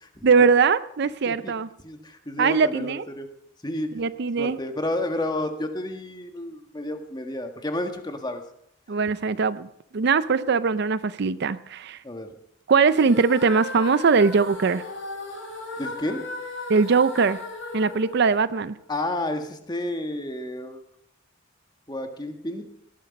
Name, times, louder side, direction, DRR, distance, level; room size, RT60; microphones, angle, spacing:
voice 1, 0.2-1.7 2.4-3.1 3.9-4.6 8.9-9.7 9.9-12.0 12.7-14.8 16.7-17.4 17.7-18.8, right 5 dB, 55° right, 15 dB, 0.5 m, -21 dB
voice 2, 1.8-3.3 3.6-3.9 4.4-8.4 12.0-12.3 15.8-16.2 18.9-20.8 21.9-22.6, left 1 dB, 20° left, 5 dB, 1.6 m, -31 dB
sound 1, 12.9-19.0, left 2 dB, 75° left, 6.2 m, -36 dB
18.5 x 11.5 x 5.3 m, 0.71 s
head